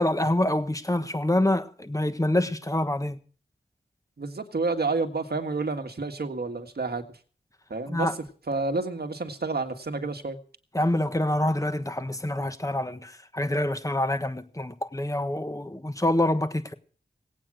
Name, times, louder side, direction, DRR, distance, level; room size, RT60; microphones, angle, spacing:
voice 1, 0.0-3.2 7.9-8.1 10.7-16.7, left 1 dB, 20° left, 1.4 m, -26 dB
voice 2, 4.2-7.2 7.7-8.1 8.5-10.4, right 3 dB, 65° right, 1.8 m, -29 dB
18.5 x 8.8 x 6.2 m
wide cardioid pair, 55°, 18 cm